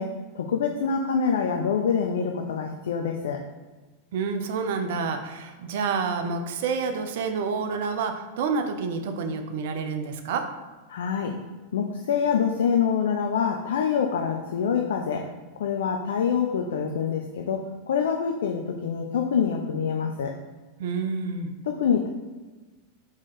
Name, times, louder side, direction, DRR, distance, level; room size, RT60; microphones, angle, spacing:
voice 1, 0.0-3.4 10.9-11.3 11.7-15.3 15.6-20.3 21.7-22.1, left 6 dB, 60° left, 3 dB, 0.3 m, -26 dB
voice 2, 4.1-10.4 20.8-21.5, right 5 dB, 55° right, 6 dB, 0.4 m, -28 dB
4.2 x 2.9 x 3.7 m, 1.3 s
figure-of-eight pair, 90°, 0 cm